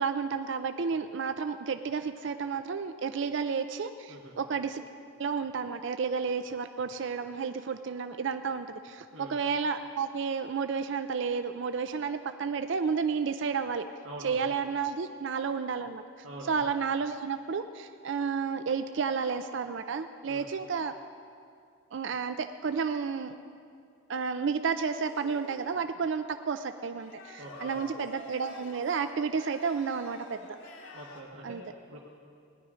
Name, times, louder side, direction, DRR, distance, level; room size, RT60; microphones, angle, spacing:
voice 1, 0.0-4.8 5.2-13.8 14.2-16.0 16.5-20.9 21.9-23.4 24.1-30.4 31.4-31.6, right 5 dB, 60° right, 9 dB, 0.4 m, -31 dB
voice 2, 14.0-14.5 16.2-16.6 20.2-20.5 27.4-27.8 30.9-32.0, right 1 dB, 80° right, -5 dB, 1.4 m, -44 dB
sound 1, 24.9-25.8 27.0-31.2, left 1 dB, 65° left, 1.5 m, -48 dB
17.5 x 11.0 x 5.0 m, 2.3 s
head